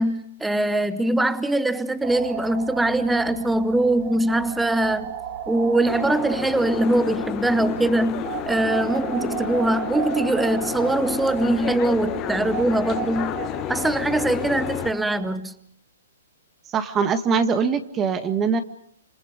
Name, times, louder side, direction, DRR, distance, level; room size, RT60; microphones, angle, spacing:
voice 1, 0.0-5.2 5.5-13.4 13.7-15.5, right 1 dB, 5° right, 13 dB, 1.0 m, -22 dB
sound 1, 2.0-15.3, right 8 dB, 45° right, 6.7 m, -34 dB
Boat Water vehicle, 5.8-14.9, left 14 dB, 30° left, 0.9 m, -31 dB
voice 2, 16.7-18.6, right 5 dB, 20° right, 9 dB, 1.8 m, -22 dB
28.5 x 27.5 x 5.1 m, 0.67 s
hypercardioid pair, 140°, 0 cm